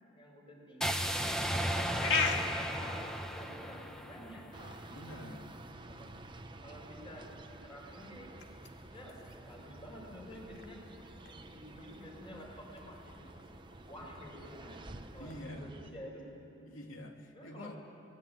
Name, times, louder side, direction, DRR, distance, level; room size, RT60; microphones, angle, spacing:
voice 1, 0.1-1.1 1.4-2.8 3.2-4.5 5.9-6.2 6.6-8.3 8.9-10.8 11.3-13.3 13.8-14.8 15.1-16.7 17.3-17.8, equal, 25° left, -1 dB, 6.5 m, -51 dB
sound 1, 0.8-4.9, equal, 5° left, 1.3 m, -35 dB
sound 2, 1.3-15.4, left 4 dB, 60° left, 2.2 m, -42 dB
sound 3, 4.5-15.9, right 2 dB, 25° right, 1.0 m, -51 dB
voice 2, 4.9-5.5 15.2-15.8 16.7-17.8, left 1 dB, 80° left, 2 dB, 2.9 m, -47 dB
28.0 x 20.5 x 9.5 m, 2.7 s
head